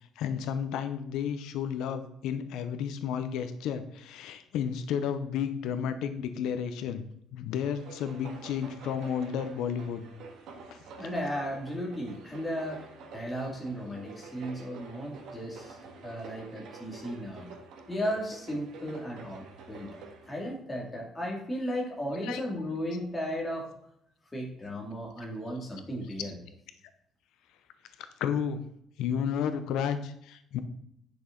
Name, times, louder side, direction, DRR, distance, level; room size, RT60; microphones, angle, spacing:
voice 1, 0.0-7.0 7.3-10.0 10.7-10.8 22.2-22.4 28.0-28.6 29.0-30.6, left 8 dB, 90° left, 10 dB, 0.7 m, -32 dB
sound 1, 7.6-20.5, right 4 dB, 80° right, 1.7 m, -48 dB
voice 2, 11.0-12.8 13.1-15.8 16.0-17.5 17.9-19.9 20.3-23.7 24.3-26.4, equal, 10° left, -2 dB, 2.4 m, -35 dB
9.9 x 6.3 x 3.8 m, 0.74 s
cardioid pair, 160°, 0 cm